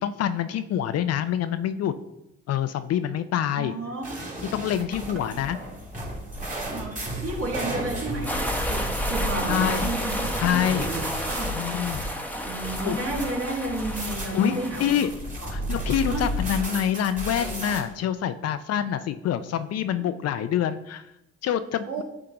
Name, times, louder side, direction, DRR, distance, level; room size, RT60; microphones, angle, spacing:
voice 1, 0.0-1.9 2.5-3.7 4.5-5.6 9.5-10.0 10.4-10.9 11.5-12.1 12.5-12.6 12.8-13.0 14.3-15.1 15.5-21.1 21.4-22.0, left 10 dB, 55° left, 11 dB, 0.4 m, -26 dB
voice 2, 3.5-4.4 6.7-11.5 12.4-14.9 15.4-15.6 16.0-16.3 20.4-20.6 21.9-22.0, right 2 dB, 50° right, -2 dB, 1.9 m, -32 dB
sound 1, 4.0-17.8, right 1 dB, 25° right, 2.2 m, -33 dB
sound 2, 8.3-15.0, equal, 5° left, 0.9 m, -32 dB
8.7 x 3.7 x 2.9 m, 0.86 s
supercardioid pair, 55°, 30 cm